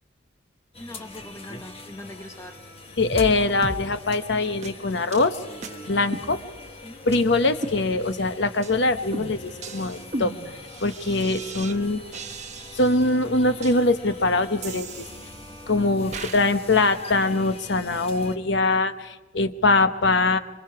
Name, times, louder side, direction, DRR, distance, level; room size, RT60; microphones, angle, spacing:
sound 1, 0.7-18.4, left 2 dB, 30° left, 1.3 m, -44 dB
voice 1, 0.8-2.6 6.8-7.0, left 1 dB, 15° left, 6 dB, 0.8 m, -41 dB
Bowed string instrument, 0.9-16.7, right 2 dB, 20° right, 5.5 m, -50 dB
voice 2, 3.0-5.4 5.9-6.4 7.0-10.3 10.8-12.0 12.7-15.1 15.7-20.4, left 2 dB, 60° left, 10 dB, 1.0 m, -22 dB
sound 2, 3.1-3.3 3.6-3.8 4.1-4.2 4.6-4.7 5.1-5.3 5.6-5.7 6.1-6.8 7.1-7.2 7.6-8.2 8.6-8.8 9.1-11.8 12.1-13.0 13.6-13.7 14.6-15.6 16.1-16.4, right 2 dB, 35° right, 1.2 m, -36 dB
27.0 x 24.0 x 4.8 m, 1.2 s
head